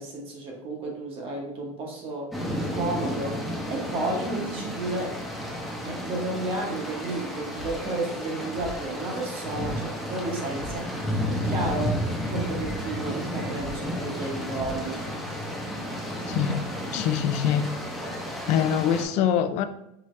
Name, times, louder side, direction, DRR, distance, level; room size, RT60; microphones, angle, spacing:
voice 1, 0.0-5.2 5.8-12.0 12.3-15.1, right 2 dB, 35° right, 1.0 m, -32 dB
sound 1, 2.3-19.0, equal, ahead, 0.7 m, -32 dB
sound 2, 7.1-14.9, left 1 dB, 85° right, 1.3 m, -43 dB
voice 2, 16.3-16.6 16.9-17.7 18.5-19.7, left 9 dB, 45° left, 0.4 m, -24 dB
4.8 x 2.7 x 3.2 m
supercardioid pair, 155°, 16 cm